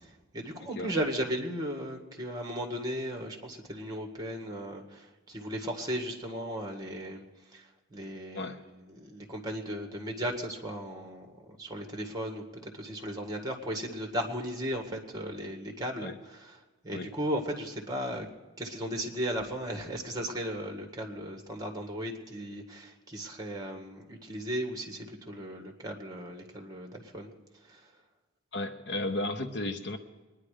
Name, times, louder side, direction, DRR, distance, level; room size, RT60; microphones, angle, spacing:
voice 1, 0.0-7.2 7.5-8.6 8.9-16.6 16.8-18.3 18.6-27.3 27.7-27.9, equal, 20° right, 3 dB, 1.7 m, -36 dB
voice 2, 28.5-30.0, left 2 dB, 55° left, 9 dB, 0.8 m, -34 dB
22.5 x 10.5 x 5.0 m, 1.2 s
head